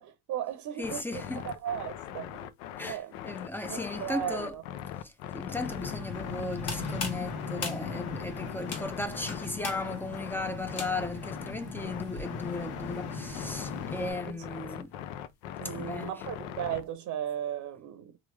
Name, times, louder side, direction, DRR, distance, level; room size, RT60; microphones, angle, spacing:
voice 1, 0.0-2.5 2.9-3.1 3.7-4.6 14.3-14.4 15.6-18.2, right 10 dB, 45° right, 0.7 m, -36 dB
sound 1, 0.8-16.9, left 10 dB, 85° left, 0.5 m, -41 dB
voice 2, 0.8-1.4 2.8-4.6 5.0-15.0 15.7-16.2, left 2 dB, 5° left, 0.4 m, -36 dB
sound 2, 5.6-14.1, left 4 dB, 65° left, 1.2 m, -39 dB
sound 3, 6.4-11.3, left 4 dB, 40° left, 1.3 m, -40 dB
3.1 x 2.4 x 3.2 m
supercardioid pair, 100°, 38 cm